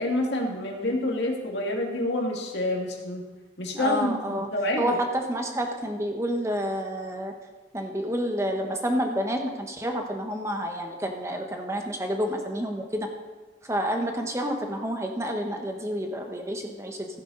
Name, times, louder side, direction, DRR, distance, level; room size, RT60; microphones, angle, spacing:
voice 1, 0.0-3.2 3.6-5.0, left 1 dB, 75° left, 1 dB, 2.1 m, -27 dB
voice 2, 3.7-4.5 4.8-7.3 7.7-13.1 13.6-17.1, equal, 15° right, 3 dB, 1.2 m, -29 dB
15.0 x 9.6 x 4.0 m, 1.3 s
head